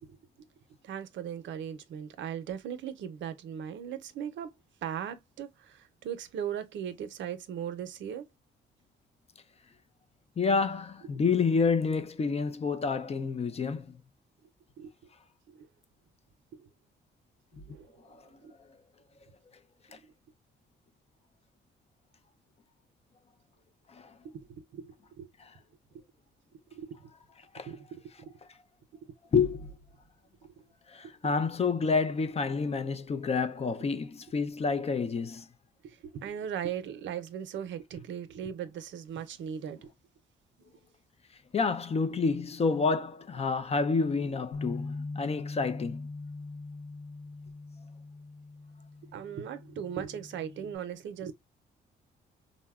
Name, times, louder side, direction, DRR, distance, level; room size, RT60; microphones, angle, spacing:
voice 1, 0.8-4.5 4.8-8.3 14.8-14.9 15.5-15.7 16.5-16.7 17.7-17.9 18.4-18.5 19.9-20.0 24.2-25.3 25.9-26.0 26.7-27.1 27.6-28.4 30.4-30.6 31.0-31.3 35.8-39.9 49.0-51.3, right 8 dB, 70° right, 0.6 m, -38 dB
voice 2, 10.4-14.0 18.1-18.2 19.9-20.0 23.9-24.1 27.5-27.7 29.3-29.7 30.9-35.5 41.5-46.0, left 4 dB, 30° left, 0.4 m, -29 dB
Bass guitar, 44.5-50.8, left 3 dB, 90° left, 0.5 m, -41 dB
3.8 x 2.1 x 2.2 m
cardioid pair, 90°, 20 cm